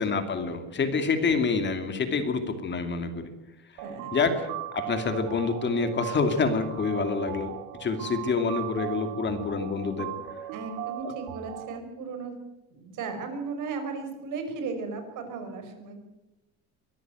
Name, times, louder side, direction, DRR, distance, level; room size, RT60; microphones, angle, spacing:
voice 1, 0.0-3.3 4.1-4.5 4.7-7.5 7.8-10.1 11.0-11.1, left 4 dB, 30° left, 7 dB, 2.5 m, -27 dB
voice 2, 3.8-4.3 10.5-12.3 12.7-16.0, right 4 dB, 65° right, 7 dB, 5.4 m, -36 dB
sound 1, 3.8-11.8, right 12 dB, 85° right, 2.3 m, -38 dB
23.5 x 14.0 x 9.3 m, 1.0 s
cardioid pair, 150°, 34 cm